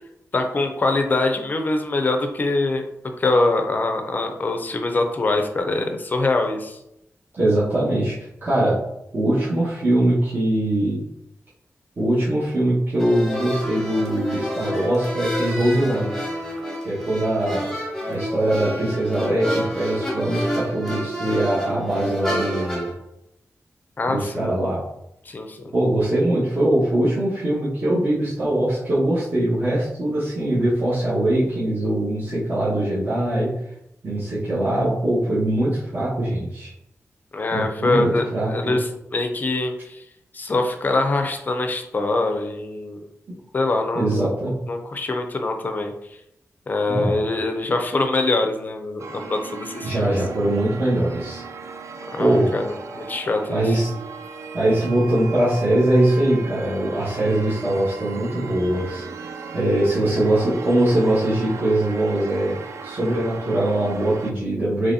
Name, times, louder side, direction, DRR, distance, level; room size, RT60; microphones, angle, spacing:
voice 1, 0.3-2.8 3.2-6.8 24.0-24.6 25.3-25.7 37.3-40.0 40.3-43.0 43.5-44.3 44.7-45.9 46.7-50.1 52.1-53.7, left 2 dB, 35° left, 4 dB, 0.5 m, -24 dB
voice 2, 7.4-8.2 8.4-8.8 9.1-11.0 12.0-16.1 16.8-17.7 18.1-22.9 24.1-24.8 25.7-33.5 34.0-36.7 37.5-38.8 43.9-44.5 46.9-47.1 49.8-51.4 52.2-52.5 53.5-53.9 54.5-59.1 59.5-62.5 62.8-64.9, right 1 dB, 40° right, -10 dB, 1.1 m, -22 dB
sound 1, 13.0-22.9, equal, 5° left, 0.9 m, -28 dB
sound 2, 49.0-64.3, right 5 dB, 70° right, 0.4 m, -37 dB
4.0 x 3.0 x 2.6 m, 0.81 s
wide cardioid pair, 140°, 5 cm